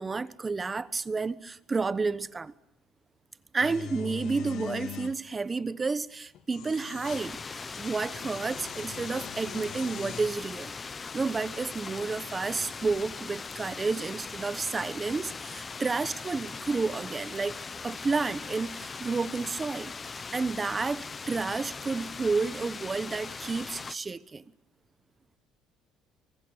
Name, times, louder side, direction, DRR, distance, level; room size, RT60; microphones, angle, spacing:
voice 1, 0.0-2.5 3.5-10.7 11.1-17.6 17.8-19.9 20.3-24.4, right 4 dB, 20° right, 1.1 m, -31 dB
sound 1, 3.6-5.2 6.3-7.3 7.7-10.4, left 8 dB, 60° left, 1.9 m, -42 dB
sound 2, 7.0-24.0, left 5 dB, 25° left, 0.9 m, -40 dB
25.0 x 24.0 x 8.9 m
cardioid pair, 125°, 0 cm